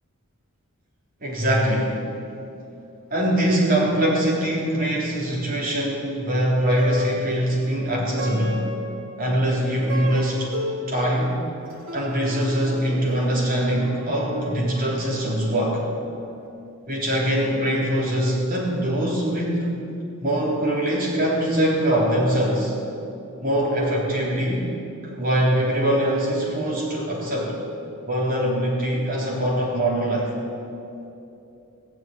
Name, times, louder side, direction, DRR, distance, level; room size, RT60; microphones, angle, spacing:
voice 1, 1.2-2.0 3.1-8.6 9.2-10.5 10.9-11.4 11.9-15.8 16.9-19.8 20.2-22.7 23.4-24.6 25.0-27.6 28.0-30.3, right 1 dB, 40° right, -5 dB, 3.6 m, -23 dB
Plucked string instrument, 6.6-16.0, equal, 65° right, 2.3 m, -36 dB
17.0 x 7.5 x 9.1 m, 2.8 s
head